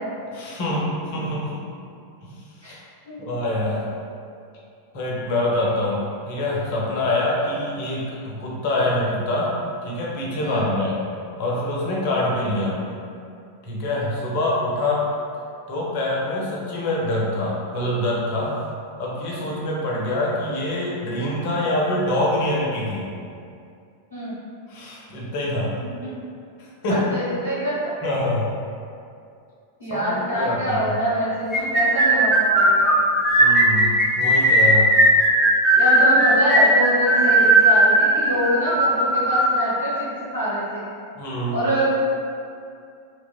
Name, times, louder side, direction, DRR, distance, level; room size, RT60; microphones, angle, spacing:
voice 1, 0.3-1.7 2.2-2.4 2.6-2.8 3.2-3.8 4.9-6.0 6.3-9.5 9.8-11.0 11.4-12.8 13.6-15.1 15.7-18.5 19.0-23.1 24.7-25.7 26.6-27.0 28.0-28.5 29.9-30.9 33.4-34.9 41.2-41.6, left 1 dB, 45° left, -4 dB, 0.5 m, -25 dB
voice 2, 26.9-27.7 29.8-32.9 35.7-40.9 41.5-41.9, equal, 80° right, -11 dB, 1.1 m, -25 dB
sound 1, 31.5-39.6, right 1 dB, 10° right, 0.5 m, -17 dB
2.8 x 2.1 x 2.3 m, 2.4 s
figure-of-eight pair, 90°, 0 cm